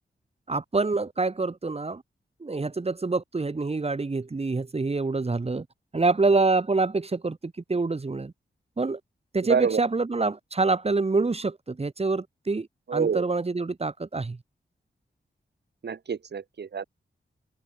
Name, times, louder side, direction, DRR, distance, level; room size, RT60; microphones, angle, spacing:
voice 1, 0.5-2.0 2.4-5.6 5.9-8.3 8.8-9.0 9.3-14.4, right 3 dB, 35° right, 2.7 m, -26 dB
voice 2, 9.4-9.8 12.9-13.2 15.8-16.8, right 6 dB, 65° right, 1.7 m, -27 dB
wide cardioid pair, 130°, 19 cm